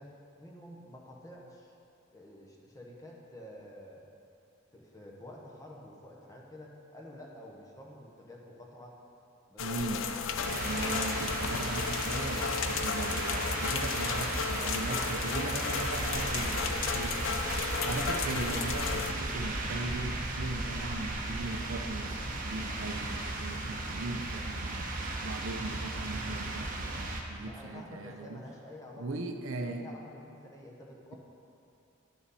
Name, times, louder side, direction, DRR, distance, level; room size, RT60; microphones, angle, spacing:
voice 1, 0.0-1.7 2.1-4.0 4.7-9.0 9.5-10.2 14.1-16.8 27.4-29.1 29.6-31.2, left 1 dB, 15° left, -2 dB, 1.0 m, -50 dB
sound 1, 9.6-19.1, left 6 dB, 70° left, 0.4 m, -34 dB
voice 2, 9.6-10.1 10.4-17.3 17.8-24.9 25.2-28.4 29.0-29.9, right 2 dB, 75° right, 5 dB, 0.6 m, -38 dB
sound 2, 10.4-27.2, right 2 dB, 40° right, 0.8 m, -35 dB
sound 3, 15.9-23.5, equal, ahead, 0.5 m, -43 dB
11.0 x 6.0 x 4.2 m, 2.6 s
head